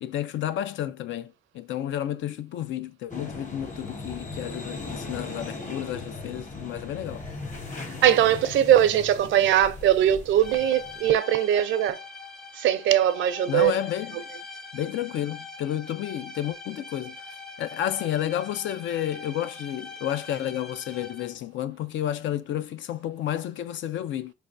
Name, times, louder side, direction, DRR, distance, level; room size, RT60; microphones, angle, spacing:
voice 1, 0.0-7.3 13.5-14.2 14.7-24.3, left 11 dB, 70° left, 0.4 m, -31 dB
sound 1, 3.1-11.1, left 3 dB, 40° left, 1.2 m, -38 dB
voice 2, 8.0-12.0 12.5-13.7, right 11 dB, 75° right, 0.5 m, -21 dB
sound 2, 10.4-21.5, left 3 dB, 5° left, 0.5 m, -42 dB
4.4 x 3.4 x 2.5 m
cardioid pair, 90°, 20 cm